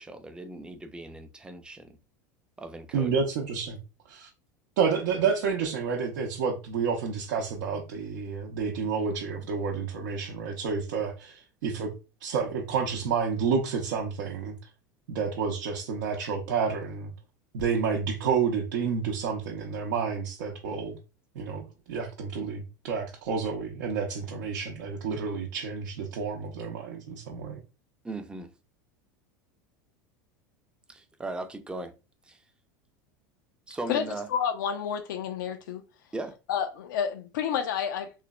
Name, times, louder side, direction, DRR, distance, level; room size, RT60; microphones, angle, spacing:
voice 1, 0.0-2.0 2.6-3.3 28.0-28.5 30.9-31.9 32.3-32.4 33.7-34.3 36.1-36.4, right 2 dB, 10° right, 0.4 m, -38 dB
voice 2, 2.9-3.8 4.1-4.3 4.8-11.9 12.2-14.5 15.1-17.1 17.5-21.0 21.3-27.6, right 6 dB, 75° right, 0.6 m, -30 dB
voice 3, 34.3-35.8 36.5-38.1, left 8 dB, 80° left, 0.4 m, -29 dB
3.1 x 2.0 x 2.3 m
supercardioid pair, 105°, 10 cm